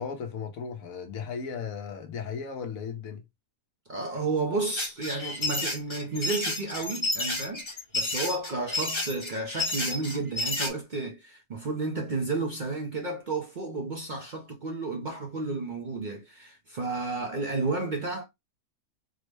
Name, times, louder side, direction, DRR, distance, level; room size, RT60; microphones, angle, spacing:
voice 1, 0.0-3.2, left 6 dB, 75° left, 1.2 m, -36 dB
voice 2, 3.9-7.7 7.9-18.2, right 3 dB, 50° right, 0.6 m, -32 dB
sound 1, 4.8-10.7, left 2 dB, 25° left, 0.8 m, -30 dB
3.7 x 2.1 x 3.1 m
omnidirectional pair, 1.5 m